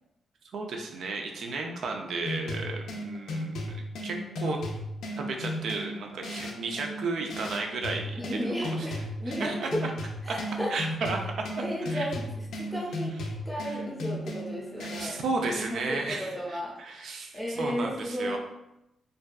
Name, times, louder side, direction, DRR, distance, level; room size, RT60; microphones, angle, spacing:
voice 1, 0.5-3.7 4.0-4.6 5.2-8.9 9.4-9.9 10.7-11.2 11.9-12.1 13.6-13.8 14.8-18.4, right 3 dB, 65° right, 2 dB, 0.4 m, -34 dB
sound 1, 2.2-15.2, equal, 85° left, 0.4 m, -35 dB
voice 2, 8.1-9.8 10.2-10.7 11.6-13.1 13.4-15.2 15.5-16.7 17.3-18.4, equal, ahead, -4 dB, 0.6 m, -34 dB
2.5 x 2.2 x 2.2 m, 0.88 s
cardioid pair, 135°, 0 cm